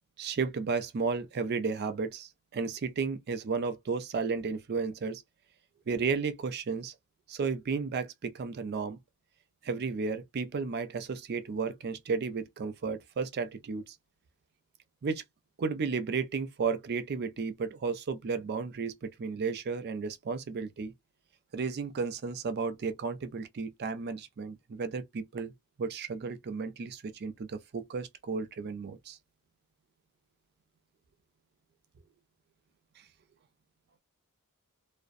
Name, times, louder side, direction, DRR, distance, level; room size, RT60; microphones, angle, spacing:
voice 1, 0.2-5.2 5.9-6.9 7.3-9.0 9.6-13.9 15.0-15.2 15.6-20.9 21.5-25.5 25.8-29.2, right 5 dB, 45° right, 0.4 m, -33 dB
2.4 x 2.0 x 2.5 m
head